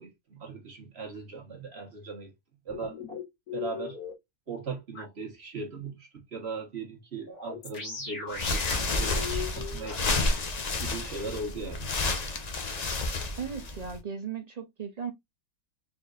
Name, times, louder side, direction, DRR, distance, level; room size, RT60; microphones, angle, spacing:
voice 1, 0.0-2.3 2.6-3.0 3.5-4.0 4.5-10.3 10.8-11.9, right 4 dB, 45° right, 1.5 m, -39 dB
sound 1, 2.7-4.1 4.9-5.0 7.3-10.2, left 6 dB, 75° left, 1.8 m, -38 dB
sound 2, 8.3-14.0, left 3 dB, 45° left, 0.5 m, -30 dB
voice 2, 13.4-15.1, right 7 dB, 80° right, 0.3 m, -36 dB
4.2 x 3.7 x 2.4 m
omnidirectional pair, 1.6 m